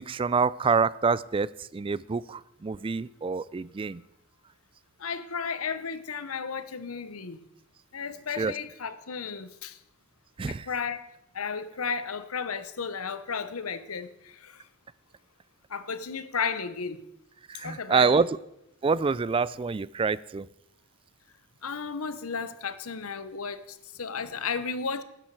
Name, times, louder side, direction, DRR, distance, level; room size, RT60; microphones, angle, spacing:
voice 1, 0.1-1.5 1.7-4.0 8.4-8.5 10.4-10.7 17.5-18.3 18.8-20.5, right 5 dB, 25° right, 0.3 m, -26 dB
voice 2, 5.0-7.4 7.9-9.8 10.5-11.1 11.3-14.7 15.7-17.1 17.6-18.3 21.6-25.0, left 5 dB, 85° left, 0.9 m, -34 dB
13.0 x 10.5 x 4.7 m
head